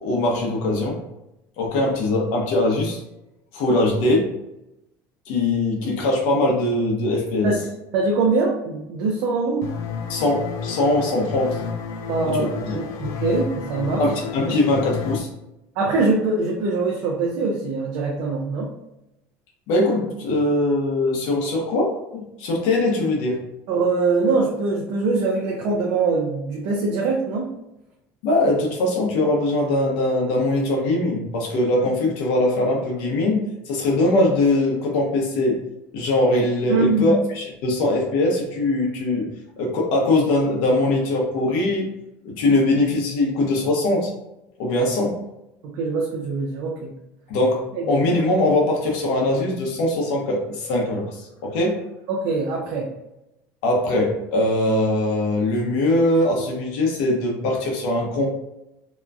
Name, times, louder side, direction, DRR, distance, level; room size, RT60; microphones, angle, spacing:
voice 1, 0.0-1.0 1.6-3.0 3.5-4.3 5.3-7.6 10.1-11.6 12.2-12.8 14.0-15.3 19.7-23.4 28.2-35.6 35.9-39.3 39.6-41.9 42.2-44.1 44.6-45.2 47.3-51.8 53.6-58.3, left 2 dB, 75° left, 0 dB, 0.8 m, -21 dB
voice 2, 7.9-9.7 12.1-14.1 14.5-14.6 15.8-18.7 23.7-27.5 36.7-37.2 45.6-46.9 47.8-47.9 52.1-52.9, right 3 dB, 65° right, -1 dB, 0.5 m, -23 dB
sound 1, 9.6-15.2, left 6 dB, 50° left, 0.3 m, -31 dB
2.9 x 2.3 x 2.4 m, 0.90 s
cardioid pair, 160°, 7 cm